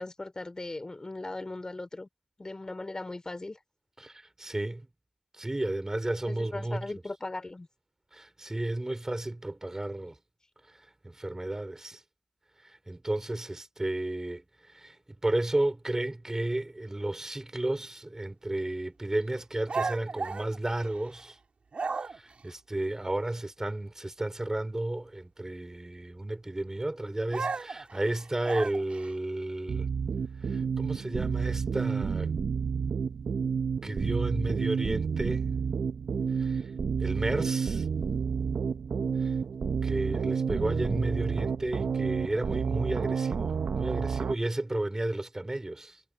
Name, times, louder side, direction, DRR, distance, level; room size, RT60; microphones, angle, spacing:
voice 1, 0.0-2.1 2.4-3.6 6.3-7.7, left 2 dB, 30° left, 3.9 m, -38 dB
voice 2, 4.0-4.9 5.3-6.9 8.1-10.2 10.7-12.0 12.6-21.4 22.0-29.9 30.4-32.3 33.8-35.6 36.3-36.7 37.0-37.9 39.2-39.3 39.8-46.0, right 1 dB, 20° right, 5.3 m, -33 dB
sound 1, 19.7-21.3 21.7-22.4 27.3-29.1, right 4 dB, 60° right, 3.8 m, -34 dB
sound 2, 29.7-44.3, right 6 dB, 80° right, 0.9 m, -30 dB
cardioid pair, 65°, 2 cm